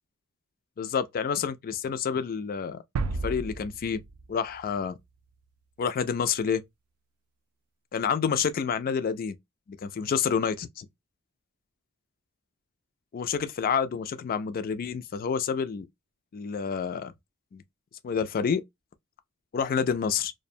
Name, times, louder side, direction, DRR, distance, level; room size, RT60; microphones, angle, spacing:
voice 1, 0.8-2.8 3.2-4.0 4.3-5.0 5.8-6.6 7.9-9.4 9.7-10.9 13.1-15.9 16.3-17.1 17.5-17.6 18.0-18.6 19.5-20.3, left 6 dB, 45° left, 0.3 m, -28 dB
sound 1, 3.0-4.8, right 3 dB, 85° right, 0.4 m, -33 dB
2.4 x 2.1 x 2.6 m
head